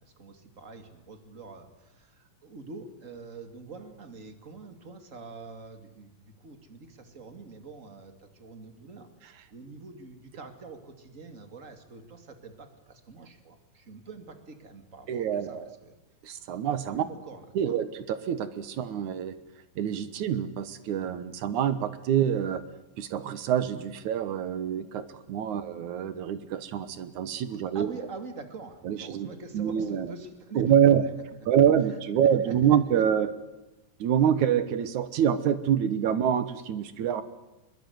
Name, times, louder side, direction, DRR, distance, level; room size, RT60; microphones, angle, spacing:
voice 1, 0.0-9.1 9.5-15.9 16.9-17.8 25.5-25.7 27.7-31.0 32.4-33.0, right 4 dB, 25° right, 7 dB, 2.2 m, -45 dB
voice 2, 15.1-15.7 16.2-17.0 17.6-19.4 19.8-22.6 23.0-27.9 28.8-29.3 29.5-30.1 30.6-31.0 31.5-33.3 34.0-37.2, right 9 dB, 65° right, 13 dB, 2.4 m, -26 dB
23.0 x 22.5 x 9.5 m, 1.0 s
omnidirectional pair, 4.1 m